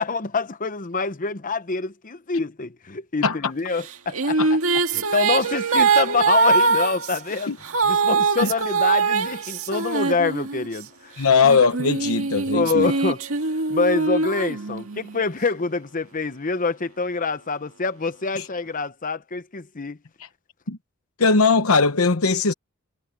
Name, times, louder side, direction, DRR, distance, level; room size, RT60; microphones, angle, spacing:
voice 1, 0.0-4.4 4.9-7.5 7.8-11.2 12.5-13.2 13.7-20.0, left 4 dB, 40° left, 0.9 m, -26 dB
sound 1, 3.8-10.8 11.4-15.2, right 4 dB, 70° right, 2.0 m, -22 dB
voice 2, 11.2-12.9 18.4-18.5 20.2-20.3 20.7-20.8 21.2-22.5, left 4 dB, 75° left, 1.0 m, -19 dB
head